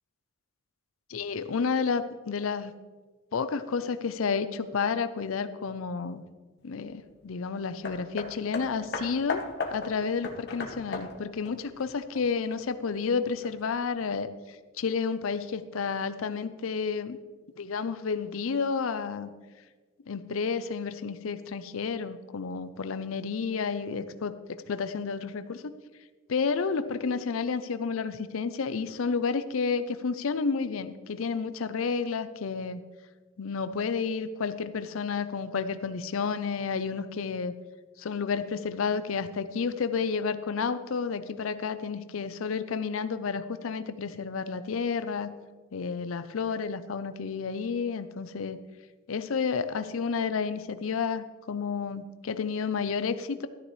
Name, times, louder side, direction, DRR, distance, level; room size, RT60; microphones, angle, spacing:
voice 1, 1.1-2.7 3.3-6.2 6.6-9.4 9.7-14.3 14.8-17.2 17.6-19.3 20.1-25.7 26.3-32.8 33.4-37.5 38.0-45.3 45.7-48.6 49.1-53.5, left 5 dB, 80° left, 12 dB, 0.5 m, -31 dB
Hammer, 7.8-12.6 13.4-13.5, left 3 dB, 55° left, 1.1 m, -36 dB
13.5 x 9.7 x 3.2 m, 1.4 s
head